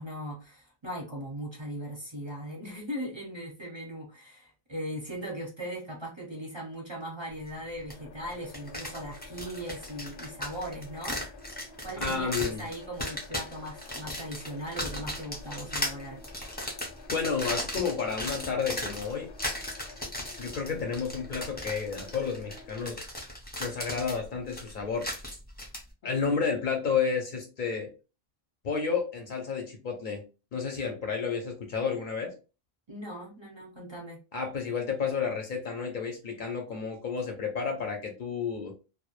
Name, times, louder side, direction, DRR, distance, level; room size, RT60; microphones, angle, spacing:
voice 1, 0.0-11.2 11.8-16.2 32.9-34.2, equal, 30° right, -2 dB, 0.6 m, -39 dB
sound 1, 7.9-22.9, left 5 dB, 90° left, 0.8 m, -51 dB
sound 2, 7.9-8.0 8.3-25.8, left 1 dB, 10° left, 0.5 m, -37 dB
voice 2, 12.0-12.6 17.1-19.3 20.4-23.0 23.6-25.1 26.0-27.9 28.6-30.2 30.5-32.3 34.3-38.7, left 5 dB, 60° left, 3 dB, 0.6 m, -31 dB
2.1 x 2.0 x 2.9 m, 0.32 s
omnidirectional pair, 1.0 m